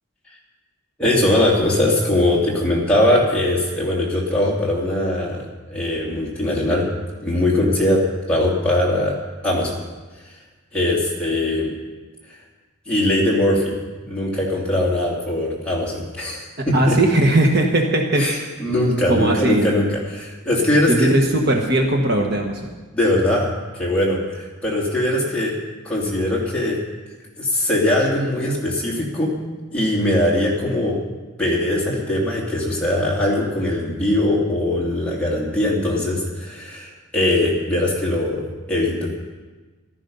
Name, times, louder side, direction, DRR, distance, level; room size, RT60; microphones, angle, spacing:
voice 1, 1.0-5.4 5.7-6.8 7.2-8.0 8.3-9.1 9.4-9.8 10.7-11.7 12.9-16.9 18.2-21.1 22.9-25.6 25.8-26.8 27.4-29.3 29.7-31.0 31.4-38.4 38.7-39.1, left 1 dB, 5° left, -5 dB, 3.0 m, -21 dB
voice 2, 16.6-18.4 19.1-19.7 20.9-22.7, right 1 dB, 45° right, 1 dB, 1.5 m, -19 dB
14.5 x 13.0 x 5.6 m, 1.3 s
head